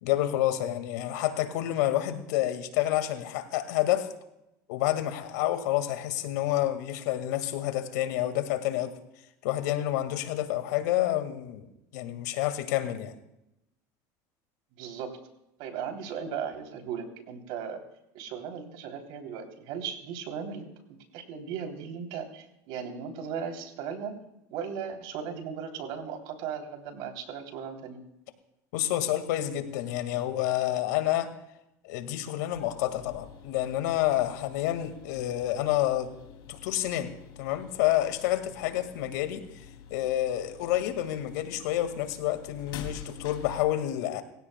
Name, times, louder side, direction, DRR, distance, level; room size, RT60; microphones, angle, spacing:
voice 1, 0.0-4.1 4.7-8.9 9.4-13.2 28.7-31.3 31.8-36.1 36.5-37.1 37.4-39.5 39.9-44.2, left 13 dB, 85° left, 9 dB, 1.8 m, -29 dB
voice 2, 14.8-15.1 15.6-17.8 18.1-20.7 21.1-24.2 24.5-28.0, right 7 dB, 70° right, 4 dB, 3.1 m, -37 dB
sound 1, 32.5-43.6, left 8 dB, 60° left, 2.6 m, -47 dB
27.0 x 16.0 x 2.2 m, 0.86 s
supercardioid pair, 110°, 9 cm